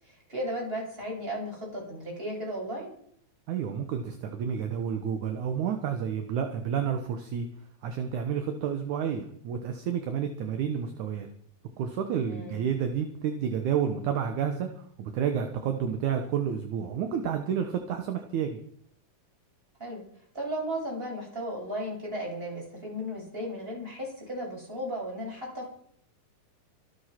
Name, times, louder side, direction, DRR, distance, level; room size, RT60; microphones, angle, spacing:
voice 1, 0.0-2.9 12.3-12.7 19.8-20.0 20.3-25.7, equal, 15° right, -2 dB, 7.0 m, -35 dB
voice 2, 3.5-7.5 7.8-11.3 11.8-18.6, right 8 dB, 65° right, 6 dB, 2.5 m, -30 dB
24.5 x 8.3 x 5.9 m, 0.63 s
omnidirectional pair, 3.9 m